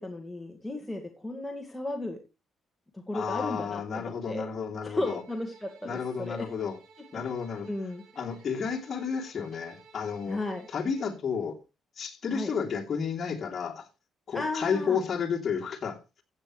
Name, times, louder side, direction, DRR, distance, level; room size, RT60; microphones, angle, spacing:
voice 1, 0.0-2.2 2.9-4.5 4.8-6.5 7.7-8.0 10.3-10.7 12.3-12.5 14.3-15.0, left 2 dB, 10° left, 2.0 m, -34 dB
voice 2, 3.1-5.2 5.8-6.8 7.1-7.7 8.2-10.4 10.7-11.6 12.0-13.9 14.3-16.0, left 6 dB, 45° left, 3.1 m, -31 dB
Bowed string instrument, 5.0-11.2, right 4 dB, 80° right, 6.3 m, -56 dB
15.0 x 8.9 x 3.2 m
cardioid pair, 90°, 0 cm